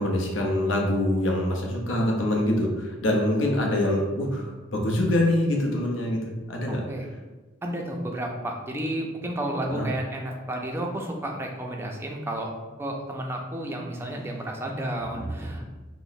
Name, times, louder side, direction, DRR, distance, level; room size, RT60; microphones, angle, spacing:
voice 1, 0.0-6.8 9.7-9.9, left 1 dB, 75° left, 1 dB, 0.6 m, -25 dB
voice 2, 6.7-7.1 7.6-12.5 12.8-15.6, right 1 dB, 10° right, 0 dB, 0.4 m, -31 dB
2.9 x 2.0 x 3.9 m, 1.2 s
head